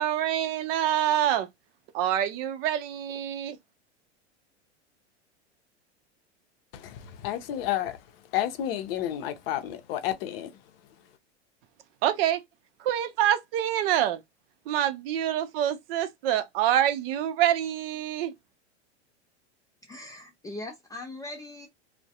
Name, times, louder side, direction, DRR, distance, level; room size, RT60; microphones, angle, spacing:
voice 1, 0.0-1.5 1.9-3.6 12.0-12.4 12.8-14.2 14.7-18.3, right 11 dB, 55° right, 0.6 m, -26 dB
voice 2, 6.7-8.0 8.3-10.5, left 12 dB, 60° left, 0.6 m, -31 dB
voice 3, 19.8-21.7, left 2 dB, 10° left, 0.3 m, -40 dB
2.2 x 2.1 x 2.7 m
hypercardioid pair, 100°, 34 cm